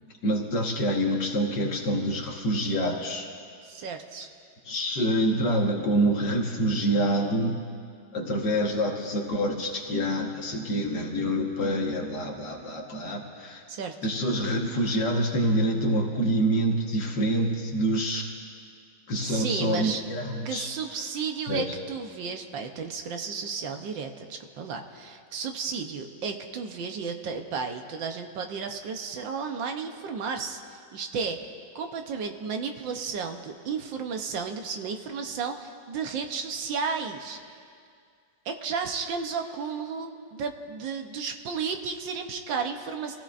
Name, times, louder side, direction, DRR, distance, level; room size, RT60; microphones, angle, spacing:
voice 1, 0.2-3.3 4.7-7.6 8.1-13.6 14.0-18.3 19.1-20.7 21.5-21.6, right 1 dB, 65° left, 0 dB, 2.1 m, -26 dB
voice 2, 3.6-4.3 13.7-13.9 19.2-20.0 20.4-31.4 31.7-37.4 38.4-43.2, right 5 dB, 75° right, 5 dB, 1.6 m, -33 dB
28.0 x 16.0 x 2.6 m, 2.2 s
omnidirectional pair, 2.1 m